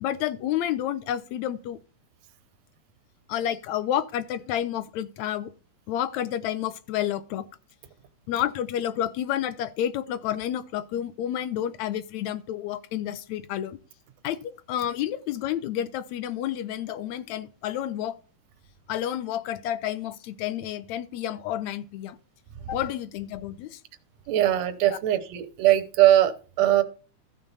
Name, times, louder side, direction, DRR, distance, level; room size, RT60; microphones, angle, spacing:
voice 1, 0.0-1.8 3.3-5.5 5.9-7.5 8.3-13.8 14.2-18.2 18.9-22.2 22.7-23.8 24.8-25.0, left 11 dB, 80° left, 1.9 m, -30 dB
voice 2, 24.3-26.8, right 13 dB, 70° right, 2.0 m, -21 dB
14.5 x 5.9 x 4.0 m
omnidirectional pair, 3.4 m